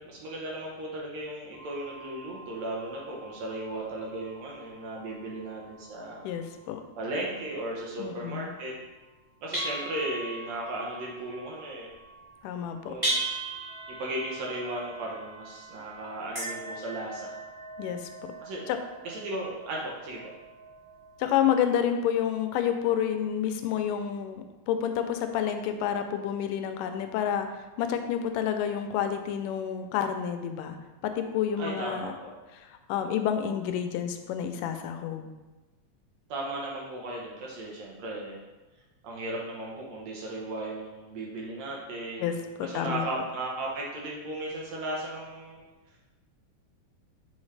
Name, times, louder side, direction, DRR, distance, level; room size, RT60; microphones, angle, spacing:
voice 1, 0.0-6.3 7.0-8.7 9.4-11.9 12.9-13.2 13.9-17.4 18.4-18.7 19.0-20.2 31.6-32.3 36.3-38.4 39.0-45.6, right 1 dB, 70° right, -2 dB, 1.9 m, -36 dB
sound 1, 1.5-9.1 9.5-21.2, right 2 dB, 35° right, 0.3 m, -40 dB
voice 2, 6.2-6.8 8.0-8.6 12.4-13.0 17.8-18.1 18.7-18.8 21.2-27.5 27.8-30.8 31.0-32.1 32.5-35.3 42.2-43.1, left 9 dB, 85° left, 7 dB, 2.2 m, -29 dB
7.1 x 4.4 x 3.2 m, 1.1 s
omnidirectional pair, 3.7 m